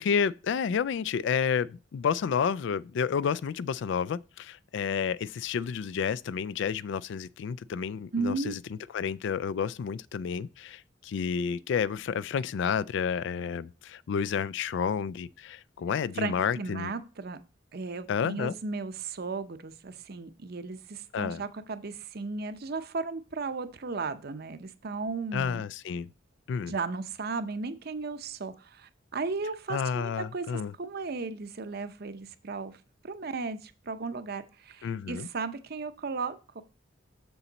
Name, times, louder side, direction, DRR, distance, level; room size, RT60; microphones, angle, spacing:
voice 1, 0.0-8.6 8.9-16.9 18.1-18.5 21.1-21.4 25.3-26.1 26.5-26.7 29.7-30.7 34.8-35.3, left 6 dB, 65° left, 0.3 m, -30 dB
voice 2, 8.1-8.5 16.2-17.4 17.7-25.6 26.6-32.8 33.0-36.6, right 4 dB, 55° right, 0.7 m, -35 dB
7.0 x 6.9 x 4.0 m
head